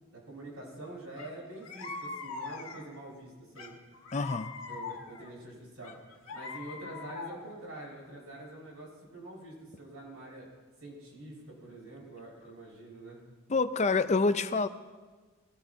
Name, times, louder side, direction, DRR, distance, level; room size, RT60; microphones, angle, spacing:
voice 1, 0.1-3.7 4.7-6.0 6.3-10.5 10.8-13.2, right 1 dB, 85° right, -4 dB, 6.1 m, -46 dB
sound 1, 1.2-1.3 1.6-3.0 3.6-5.3 5.8-7.6, left 4 dB, 80° left, 1.9 m, -42 dB
voice 2, 4.1-4.5 13.5-14.7, left 4 dB, 35° left, 12 dB, 0.5 m, -27 dB
22.0 x 16.5 x 2.8 m, 1.4 s
head